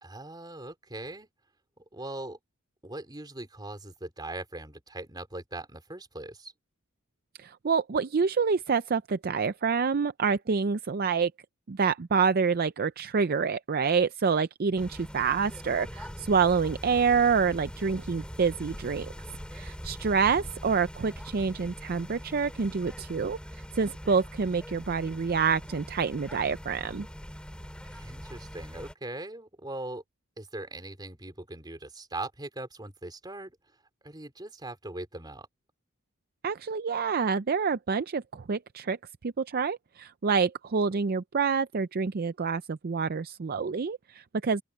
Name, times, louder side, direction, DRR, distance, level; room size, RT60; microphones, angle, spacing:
voice 1, 0.0-1.3 1.9-2.4 2.8-6.5 20.3-20.5 27.8-30.0 30.4-33.6 34.0-35.5, right 2 dB, 20° right, 3.7 m, -40 dB
voice 2, 7.4-11.3 11.7-19.1 19.5-27.1 36.4-39.0 39.2-44.6, right 5 dB, 45° right, 0.5 m, -27 dB
sound 1, 14.8-28.9, equal, 5° left, 6.0 m, -42 dB
open air
head